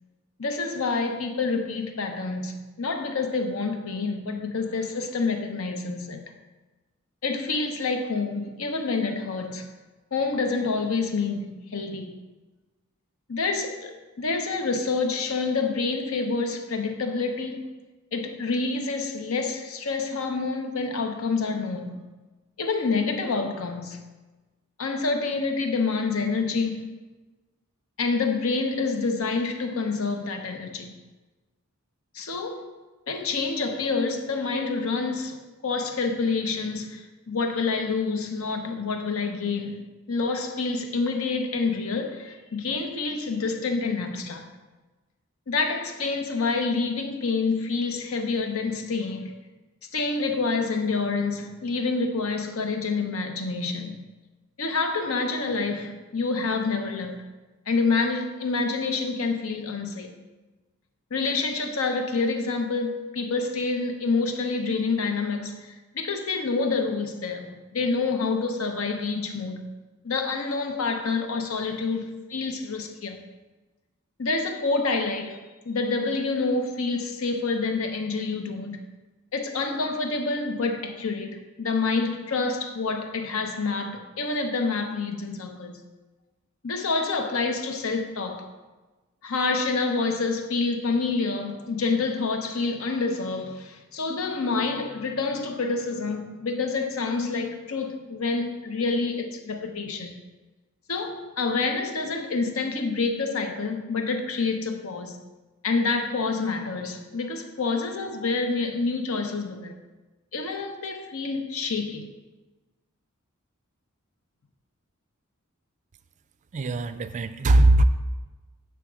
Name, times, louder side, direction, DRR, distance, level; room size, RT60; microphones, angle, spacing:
voice 1, 0.4-6.2 7.2-9.7 10.1-12.1 13.3-17.6 18.1-22.0 22.6-24.0 24.8-26.8 28.0-30.9 32.1-32.7 33.1-35.4 35.6-44.5 45.5-49.3 49.8-54.0 54.6-57.2 57.7-60.1 61.1-69.7 70.0-73.2 74.2-75.4 75.6-78.8 79.3-85.8 86.6-88.5 89.2-100.2 100.9-105.2 105.6-109.8 110.3-112.1, left 4 dB, 70° left, 5 dB, 0.8 m, -27 dB
voice 2, 116.5-117.8, right 2 dB, 35° right, 11 dB, 0.3 m, -20 dB
8.2 x 3.5 x 6.1 m, 1.2 s
head